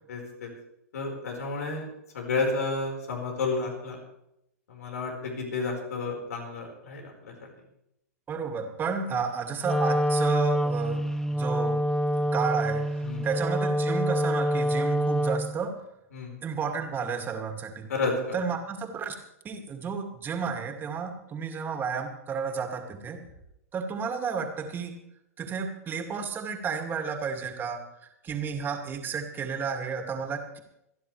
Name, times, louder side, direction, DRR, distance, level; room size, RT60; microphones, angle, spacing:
voice 1, 0.1-0.5 0.9-1.8 2.1-4.0 4.7-7.5 9.1-9.2 13.0-13.3 16.1-16.3 17.9-18.4, left 3 dB, 75° left, 1 dB, 4.9 m, -31 dB
voice 2, 8.3-11.8 12.3-15.8 16.4-17.9 18.3-19.1 19.4-23.2 23.7-24.9 25.4-27.8 28.2-30.6, right 6 dB, 25° right, 4 dB, 2.5 m, -32 dB
Wind instrument woodwind instrument, 9.6-15.6, equal, 5° left, 0.6 m, -26 dB
27.0 x 10.5 x 3.4 m, 0.81 s
hypercardioid pair, 110°, 8 cm